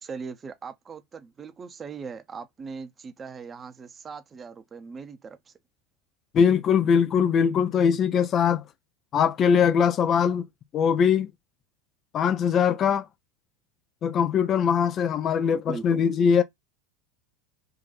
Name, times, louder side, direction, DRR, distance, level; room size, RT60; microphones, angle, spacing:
voice 1, 0.0-5.5 15.7-16.0, right 5 dB, 25° right, 0.8 m, -39 dB
voice 2, 6.3-8.6 9.1-10.5 10.7-11.3 12.1-13.1 14.0-16.4, left 7 dB, 40° left, 0.5 m, -21 dB
3.8 x 2.6 x 4.0 m
hypercardioid pair, 80°, 0 cm